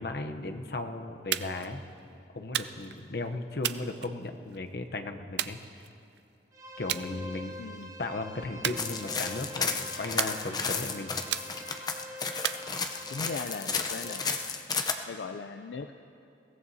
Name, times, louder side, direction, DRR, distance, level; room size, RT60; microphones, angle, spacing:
voice 1, 0.0-1.8 2.3-5.6 6.8-7.6 8.0-11.2, left 2 dB, 60° left, 5 dB, 0.8 m, -36 dB
sound 1, 1.3-1.7 2.5-3.0 3.6-4.6 5.4-6.2 6.9-7.1 7.5-7.8 8.6-9.4 10.2-10.8 11.3-11.9 12.4-13.2, right 11 dB, 70° right, 0.4 m, -35 dB
sound 2, 6.5-14.4, left 1 dB, 20° right, 0.9 m, -45 dB
voice 2, 7.6-7.9 13.1-14.3 15.1-15.9, left 4 dB, 75° left, 7 dB, 0.4 m, -38 dB
sound 3, 8.8-14.9, left 5 dB, 25° left, 0.6 m, -33 dB
22.0 x 17.0 x 2.8 m, 2.7 s
head